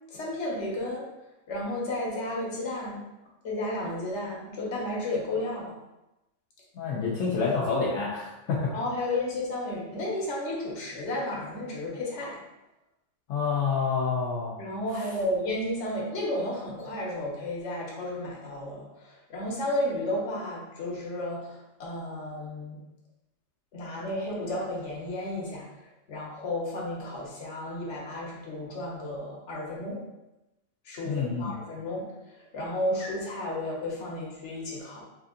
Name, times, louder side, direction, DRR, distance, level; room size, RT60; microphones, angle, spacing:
voice 1, 0.1-1.1 1.5-3.0 3.4-5.7 8.7-12.4 14.6-22.8 23.7-30.0 30.8-35.0, left 1 dB, 65° left, -3 dB, 1.3 m, -33 dB
voice 2, 6.7-8.7 13.3-14.6 31.1-31.5, left 5 dB, 85° left, -5 dB, 1.0 m, -28 dB
3.4 x 2.5 x 3.7 m, 0.97 s
omnidirectional pair, 1.3 m